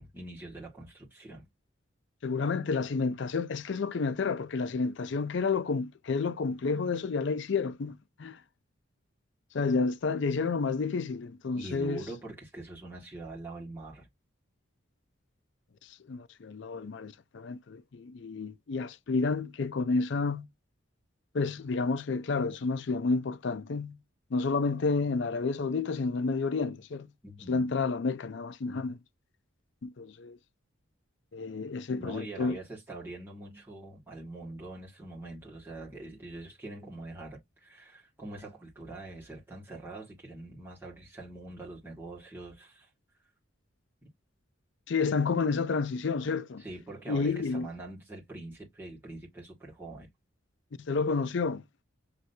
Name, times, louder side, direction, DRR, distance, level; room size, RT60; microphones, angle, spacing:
voice 1, 0.0-1.5 11.6-14.1 27.2-27.8 32.0-42.9 46.6-50.1, right 2 dB, 10° right, 1.8 m, -44 dB
voice 2, 2.2-8.4 9.5-12.0 15.8-20.5 21.3-24.0 24.3-27.1 27.5-29.0 29.8-30.4 31.3-32.6 44.9-46.6 47.1-47.7 50.8-51.6, left 4 dB, 60° left, 0.4 m, -30 dB
6.1 x 3.1 x 2.7 m
head